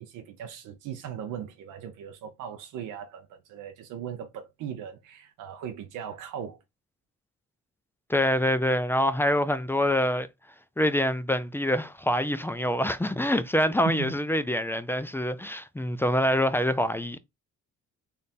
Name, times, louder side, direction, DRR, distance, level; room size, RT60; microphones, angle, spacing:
voice 1, 0.0-6.6 13.8-14.1, right 9 dB, 90° right, 0.7 m, -38 dB
voice 2, 8.1-10.3 10.8-17.2, left 1 dB, 10° left, 0.4 m, -25 dB
3.5 x 2.5 x 4.1 m
cardioid pair, 90°, 30 cm